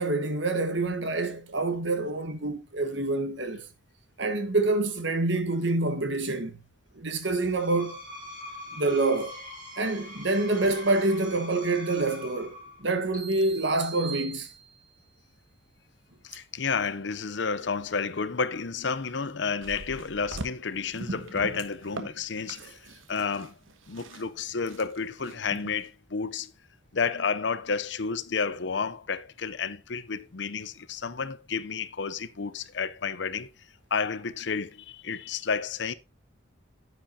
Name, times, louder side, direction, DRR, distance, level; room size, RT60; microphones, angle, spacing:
voice 1, 0.0-3.6 4.2-6.6 7.0-8.0 8.7-9.3 9.8-14.5 22.6-22.7, right 2 dB, 65° right, 1.4 m, -27 dB
Screech, 7.4-12.9, left 1 dB, 40° right, 4.4 m, -43 dB
sound 1, 13.1-15.1, right 6 dB, 20° right, 4.6 m, -42 dB
voice 2, 16.2-23.6 23.9-26.5 26.9-33.5 33.9-35.9, left 5 dB, 65° left, 0.7 m, -31 dB
sound 2, 19.6-25.9, right 2 dB, 85° right, 1.2 m, -41 dB
10.0 x 8.0 x 2.8 m
head